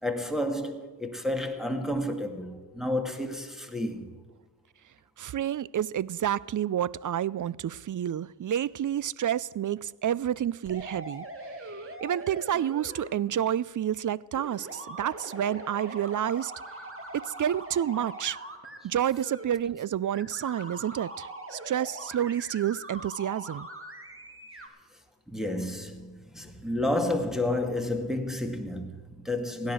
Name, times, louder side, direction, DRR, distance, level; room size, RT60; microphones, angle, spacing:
voice 1, 0.0-4.1 25.3-29.7, left 1 dB, ahead, 2.0 m, -31 dB
voice 2, 5.2-11.3 11.6-16.5 17.1-18.4 18.8-23.7, right 10 dB, 45° right, 0.4 m, -29 dB
sound 1, 10.6-13.1 14.3-18.8 19.1-19.4 20.1-24.7, right 1 dB, 30° right, 2.3 m, -42 dB
17.0 x 10.5 x 6.2 m
cardioid pair, 55°, 44 cm